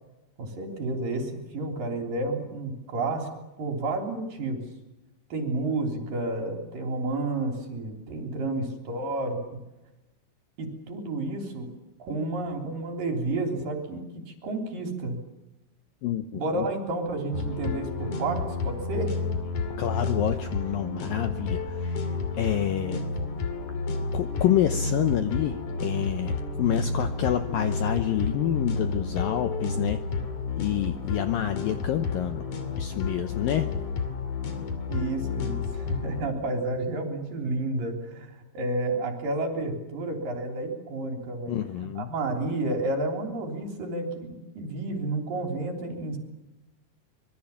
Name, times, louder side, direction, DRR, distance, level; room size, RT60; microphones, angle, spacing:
voice 1, 0.4-3.3 3.6-4.6 5.3-9.4 10.6-11.7 12.0-15.2 16.3-19.1 34.9-41.6 42.0-46.2, right 2 dB, 55° right, 3 dB, 4.9 m, -31 dB
voice 2, 16.0-16.7 19.8-23.0 24.1-30.0 30.6-32.4 32.8-33.7 41.5-42.1, left 11 dB, 75° left, 8 dB, 2.2 m, -28 dB
sound 1, 17.3-36.2, left 4 dB, 45° left, 3.4 m, -31 dB
25.5 x 22.5 x 7.2 m, 1.0 s
omnidirectional pair, 5.1 m